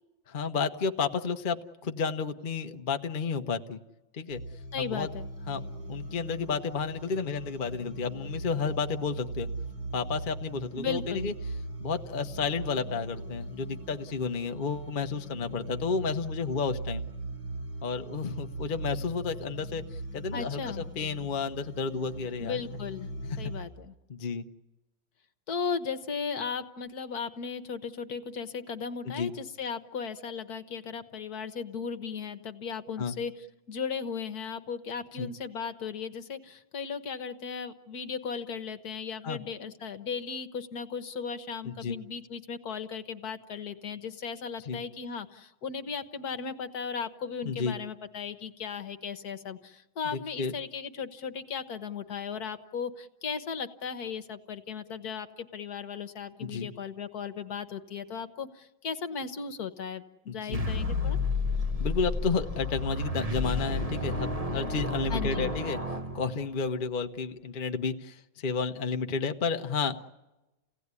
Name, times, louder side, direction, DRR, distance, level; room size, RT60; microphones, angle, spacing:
voice 1, 0.3-3.8 4.1-4.4 4.8-5.1 5.5-5.6 5.9-9.5 9.9-11.3 11.8-17.0 17.8-22.6 24.1-24.5 29.0-29.3 33.0-33.1 35.2-35.3 39.2-39.4 41.6-42.0 44.7-44.8 47.4-47.7 50.1-50.5 56.4-56.7 60.3-60.6 61.8-65.8 66.1-70.1, left 5 dB, 40° left, 6 dB, 0.7 m, -31 dB
sound 1, 4.3-23.6, right 2 dB, 60° right, 8.4 m, -39 dB
voice 2, 4.7-5.3 10.8-11.3 20.3-20.8 22.4-23.1 23.4-23.9 25.5-33.3 33.7-61.2 65.1-65.5, left 6 dB, 55° left, 9 dB, 1.5 m, -36 dB
sound 2, 60.5-66.7, left 2 dB, 25° right, 0.9 m, -31 dB
30.0 x 17.0 x 9.7 m, 1.0 s
omnidirectional pair, 2.1 m